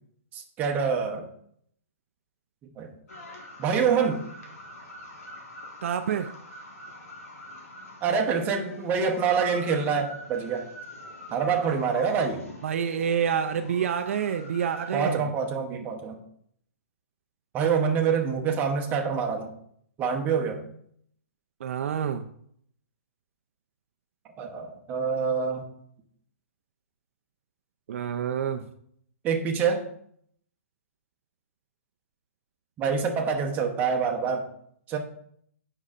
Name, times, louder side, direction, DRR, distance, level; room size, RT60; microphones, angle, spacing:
voice 1, 0.3-1.3 2.8-2.9 3.6-4.2 8.0-10.7 11.3-12.5 14.9-16.2 17.5-19.5 20.0-20.6 24.4-25.6 29.2-29.9 32.8-34.5 34.9-35.0, right 6 dB, 20° right, 2 dB, 0.9 m, -26 dB
sound 1, 3.1-14.9, left 1 dB, 80° left, 1.6 m, -45 dB
voice 2, 5.8-6.3 12.6-15.2 21.6-22.3 27.9-28.7, right 8 dB, 60° right, 7 dB, 0.4 m, -28 dB
8.1 x 5.4 x 2.5 m, 0.67 s
hypercardioid pair, 145°, 8 cm